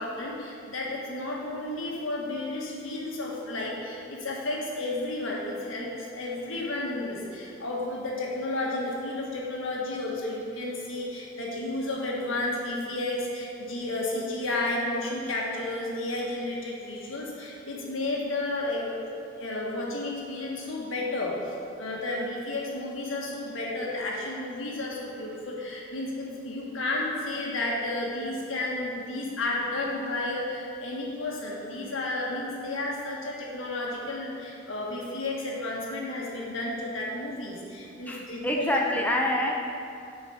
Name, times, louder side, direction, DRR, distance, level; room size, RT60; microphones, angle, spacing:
voice 1, 0.0-39.0, left 2 dB, 75° left, -3 dB, 1.5 m, -32 dB
voice 2, 38.1-39.5, left 1 dB, 10° left, -1 dB, 0.5 m, -26 dB
8.1 x 4.8 x 5.8 m, 2.5 s
head